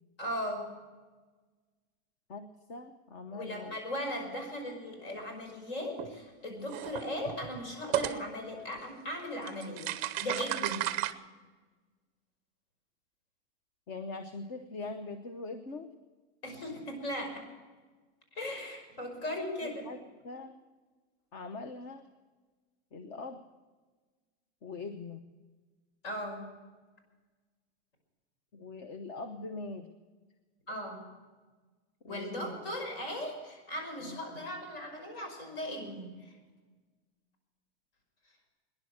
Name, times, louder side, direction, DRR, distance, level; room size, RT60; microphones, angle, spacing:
voice 1, 0.2-0.6 3.3-10.8 16.4-17.4 18.4-19.9 26.0-26.4 30.7-31.0 32.1-36.1, left 1 dB, 60° left, 4 dB, 5.6 m, -38 dB
voice 2, 2.3-3.8 13.9-15.9 19.6-20.0 20.2-20.5 21.3-22.0 22.9-23.4 24.6-25.2 28.5-29.9 32.0-32.6 34.0-34.2, left 3 dB, 35° left, 9 dB, 0.9 m, -42 dB
sound 1, 6.0-6.2 6.7-8.2 9.2-9.3 9.5-11.1, right 15 dB, 25° right, 0.6 m, -33 dB
19.5 x 10.5 x 6.4 m, 1.3 s
supercardioid pair, 170°, 33 cm